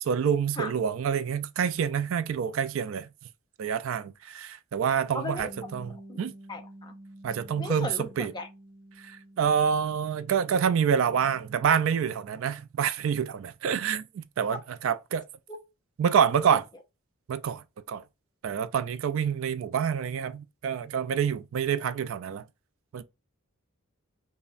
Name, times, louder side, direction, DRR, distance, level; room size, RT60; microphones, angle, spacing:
voice 1, 0.1-3.1 3.6-6.3 7.2-8.3 9.0-15.2 16.0-16.7 17.3-17.6 17.9-18.0 18.4-22.4 22.9-23.0, right 7 dB, 65° right, 0.3 m, -27 dB
voice 2, 5.1-5.5 6.1-6.2 6.5-6.9 7.6-8.5 15.5-15.6, left 2 dB, 20° left, 0.6 m, -36 dB
Bass guitar, 5.4-11.6, right 1 dB, 40° left, 0.9 m, -50 dB
5.3 x 2.1 x 2.5 m
head